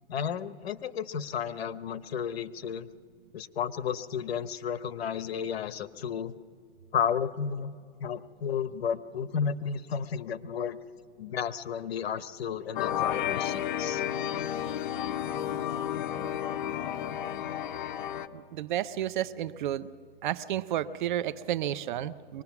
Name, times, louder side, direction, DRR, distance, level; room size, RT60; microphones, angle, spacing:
voice 1, 0.1-2.9 3.3-6.3 6.9-7.7 8.0-10.8 11.2-14.0, left 7 dB, 70° left, 13 dB, 1.0 m, -32 dB
sound 1, 12.7-18.3, left 10 dB, 50° left, 0.9 m, -32 dB
voice 2, 18.3-19.9 20.2-22.4, right 12 dB, 50° right, 13 dB, 0.8 m, -31 dB
23.5 x 20.0 x 6.0 m, 2.2 s
hypercardioid pair, 150°, 32 cm